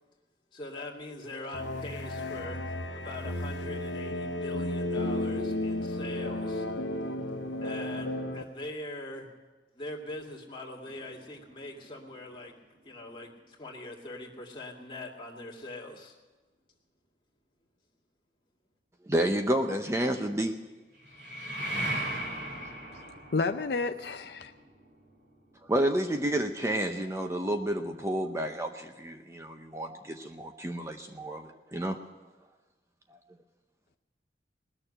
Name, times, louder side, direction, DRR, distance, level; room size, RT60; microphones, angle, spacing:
voice 1, 0.5-2.6 2.9-6.7 7.6-9.3 9.7-12.5 12.8-16.1, left 2 dB, 25° left, -1 dB, 2.1 m, -42 dB
sound 1, 1.5-8.4, left 1 dB, 90° left, 1.0 m, -33 dB
sound 2, 10.8-13.5 20.9-26.6, right 1 dB, 70° right, 3.3 m, -39 dB
voice 2, 19.1-20.5 22.0-22.1 25.7-32.0, right 1 dB, 15° right, 5 dB, 0.6 m, -30 dB
voice 3, 23.0-24.5, left 3 dB, 65° left, 8 dB, 0.5 m, -31 dB
19.5 x 6.9 x 9.9 m, 1.2 s
head